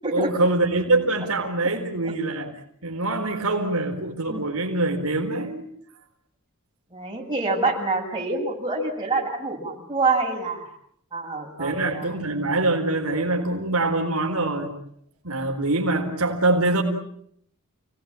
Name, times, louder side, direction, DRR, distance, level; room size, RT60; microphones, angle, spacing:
voice 1, 0.1-2.5 2.8-5.7 11.6-14.8 15.2-16.8, right 2 dB, 80° right, 2 dB, 4.2 m, -24 dB
voice 2, 6.9-10.7 11.1-12.1, right 3 dB, 20° right, -2 dB, 8.0 m, -26 dB
30.0 x 18.5 x 8.9 m, 0.70 s
head